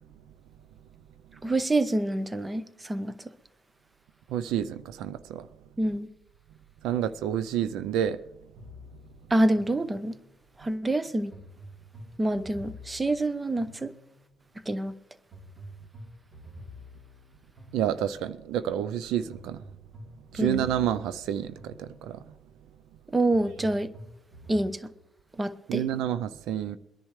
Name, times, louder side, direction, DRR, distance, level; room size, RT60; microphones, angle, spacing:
voice 1, 1.4-3.3 5.8-6.1 9.3-10.2 10.6-11.3 12.2-13.9 14.7-14.9 20.4-20.7 23.1-23.9 24.5-24.9 25.4-25.8, right 1 dB, 20° right, 0.7 m, -27 dB
voice 2, 4.3-5.5 6.8-8.2 17.7-19.6 20.3-22.2 25.7-26.8, right 10 dB, 80° right, 0.5 m, -29 dB
sound 1, 8.6-10.4 11.3-14.4 15.3-18.4 19.3-22.3 23.3-24.7, left 1 dB, 45° right, 3.4 m, -48 dB
22.5 x 10.5 x 3.2 m
cardioid pair, 95°, 0 cm